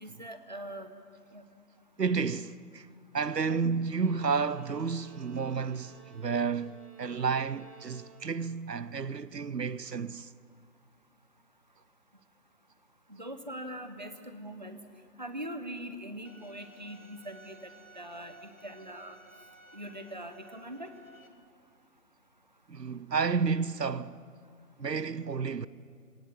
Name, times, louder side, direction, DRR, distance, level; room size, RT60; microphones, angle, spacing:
voice 1, 0.0-0.9 1.3-1.4 13.1-14.8 15.2-19.2 19.7-20.9, right 1 dB, 30° right, 0.8 m, -42 dB
voice 2, 2.0-2.9 3.1-10.3 22.7-24.2 24.8-25.7, right 5 dB, 85° right, 0.8 m, -31 dB
Bowed string instrument, 3.9-8.6, right 6 dB, 5° right, 2.2 m, -56 dB
Bowed string instrument 2, 16.2-21.3, right 2 dB, 55° left, 2.1 m, -56 dB
18.5 x 18.0 x 8.0 m
figure-of-eight pair, 160°, 48 cm